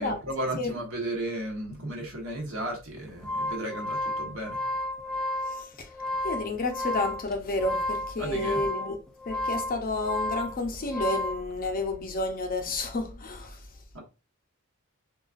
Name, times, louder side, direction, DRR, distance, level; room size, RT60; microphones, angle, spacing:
voice 1, 0.0-4.6 8.2-8.6 13.9-14.0, right 1 dB, 65° right, 1.1 m, -34 dB
sound 1, 3.0-11.4, left 1 dB, 5° left, 0.3 m, -32 dB
voice 2, 5.5-5.9 6.2-9.0 9.3-13.6, left 2 dB, 40° left, 0.6 m, -30 dB
3.9 x 2.3 x 2.4 m
head